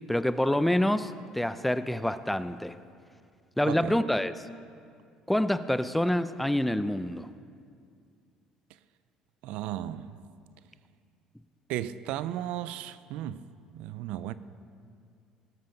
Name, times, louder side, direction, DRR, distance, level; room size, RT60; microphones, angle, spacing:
voice 1, 0.1-2.7 3.6-4.3 5.3-7.3, left 1 dB, 5° left, 0.5 m, -27 dB
voice 2, 3.6-4.0 9.4-10.2 11.7-13.4 13.7-14.3, right 12 dB, 75° right, 0.4 m, -35 dB
18.0 x 8.0 x 5.2 m
supercardioid pair, 95°, 2 cm